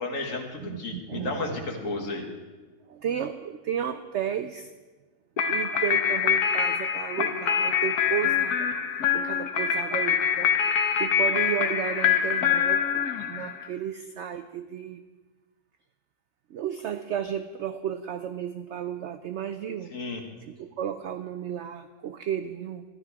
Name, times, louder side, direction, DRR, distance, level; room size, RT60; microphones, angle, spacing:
voice 1, 0.0-2.2 19.9-20.2, left 3 dB, 55° left, 2 dB, 1.7 m, -32 dB
voice 2, 0.6-1.8 2.9-4.7 5.5-8.7 9.1-10.5 11.0-15.1 16.5-20.0 20.5-22.8, right 9 dB, 75° right, 9 dB, 0.6 m, -33 dB
sound 1, 5.4-13.7, left 7 dB, 70° left, 1.4 m, -25 dB
13.0 x 11.5 x 4.8 m, 1.3 s
omnidirectional pair, 1.7 m